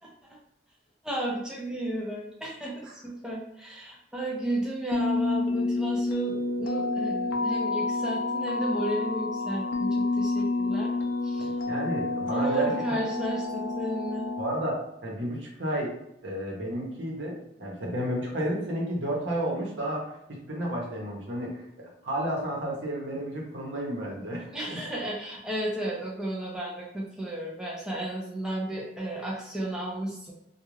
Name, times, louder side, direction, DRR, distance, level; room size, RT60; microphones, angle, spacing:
voice 1, 0.0-0.4 1.0-10.9 11.2-11.5 12.3-14.3 24.5-30.3, right 1 dB, 5° right, -4 dB, 0.4 m, -33 dB
sound 1, 4.9-14.6, left 3 dB, 80° left, 0.4 m, -29 dB
voice 2, 11.4-13.0 14.4-15.9 16.2-20.1 20.5-24.8, right 1 dB, 75° right, -2 dB, 0.8 m, -32 dB
2.4 x 2.2 x 3.1 m, 0.82 s
head